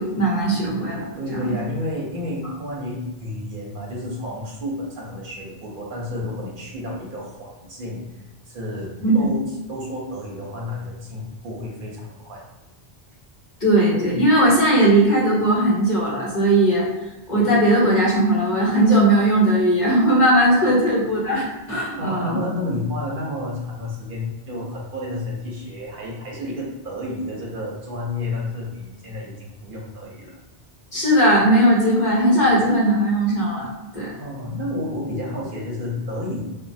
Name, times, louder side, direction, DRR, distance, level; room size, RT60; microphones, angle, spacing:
voice 1, 0.0-1.0 1.3-1.5 9.0-9.3 13.6-16.9 17.3-22.4 30.9-33.7 33.9-34.1, right 1 dB, 45° left, -5 dB, 0.9 m, -18 dB
voice 2, 1.1-8.0 8.5-12.4 20.5-20.6 22.0-30.3 33.9-36.4, left 1 dB, 60° right, -2 dB, 0.7 m, -31 dB
3.0 x 2.1 x 2.6 m, 1.0 s
omnidirectional pair, 1.1 m